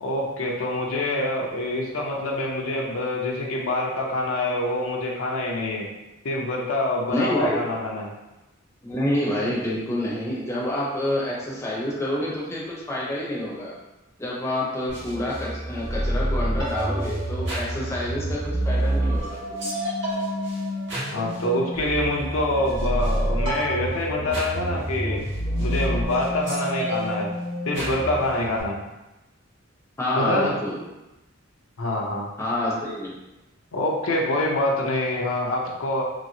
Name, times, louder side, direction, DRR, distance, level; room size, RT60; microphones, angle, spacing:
voice 1, 0.0-5.9 6.2-8.1 21.1-25.2 25.6-27.3 27.7-28.8 30.1-30.6 31.8-32.3 33.7-36.0, left 1 dB, 85° left, -1 dB, 0.6 m, -26 dB
voice 2, 7.1-7.6 8.8-13.7 14.2-19.7 30.0-30.8 32.4-33.1, left 1 dB, 15° left, -5 dB, 0.6 m, -28 dB
sound 1, 14.9-28.6, equal, 60° right, 1.0 m, -28 dB
2.9 x 2.7 x 2.7 m, 1.0 s
head